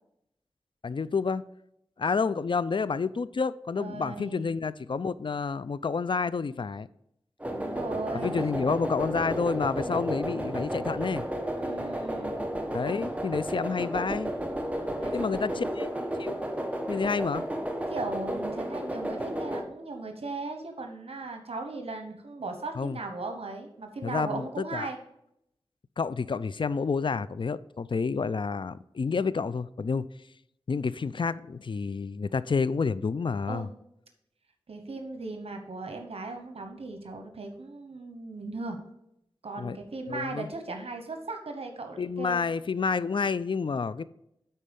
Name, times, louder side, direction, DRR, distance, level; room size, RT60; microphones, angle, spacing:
voice 1, 0.8-1.4 2.0-6.9 8.1-11.2 12.7-14.3 15.1-15.9 16.2-16.3 16.8-17.4 22.8-23.0 24.0-24.9 26.0-30.1 30.7-33.7 39.6-39.8 40.1-40.5 42.0-44.0, left 5 dB, 55° left, 0.4 m, -29 dB
voice 2, 3.7-4.5 7.5-8.4 11.6-12.4 15.0-15.7 17.9-25.0 33.5-33.7 34.7-38.8 39.4-42.4, right 3 dB, 80° right, 1.0 m, -37 dB
sound 1, 7.4-19.6, right 1 dB, 15° right, 1.2 m, -32 dB
10.0 x 4.2 x 5.2 m
wide cardioid pair, 50°, 10 cm